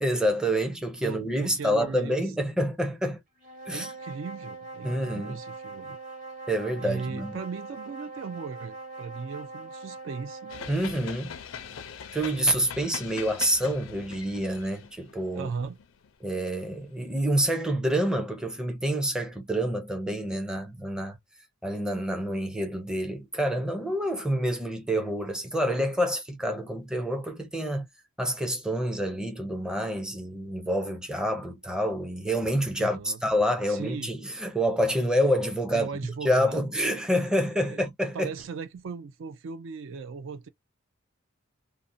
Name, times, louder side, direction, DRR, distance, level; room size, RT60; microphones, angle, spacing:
voice 1, 0.0-3.2 3.7-3.9 4.8-5.4 6.5-7.3 10.7-11.4 12.1-15.5 16.2-21.2 21.6-27.9 28.2-35.9 36.2-38.3, equal, 5° right, 0.5 m, -27 dB
voice 2, 1.0-2.3 3.7-6.0 6.8-10.5 15.4-15.8 32.8-33.2 33.7-34.1 35.7-36.6 37.7-37.8 38.1-40.5, right 5 dB, 65° right, 0.3 m, -37 dB
sound 1, 3.4-10.8, right 3 dB, 40° right, 1.2 m, -42 dB
sound 2, 10.5-16.8, left 7 dB, 70° left, 0.4 m, -42 dB
2.5 x 2.1 x 2.6 m
head